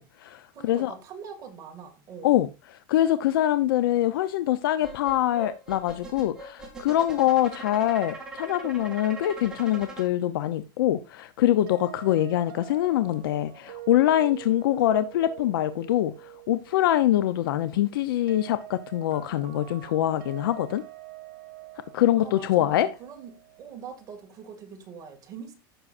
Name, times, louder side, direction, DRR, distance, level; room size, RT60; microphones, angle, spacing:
voice 1, 0.0-0.9 2.2-2.5 2.9-20.8 21.9-22.9, left 13 dB, 75° left, 0.7 m, -24 dB
voice 2, 0.5-2.5 22.2-25.5, right 6 dB, 30° right, 2.2 m, -43 dB
sound 1, 4.8-10.1, right 3 dB, 5° right, 2.6 m, -41 dB
sound 2, 11.7-24.5, right 17 dB, 65° right, 1.6 m, -46 dB
15.0 x 6.3 x 2.5 m
supercardioid pair, 145°, 12 cm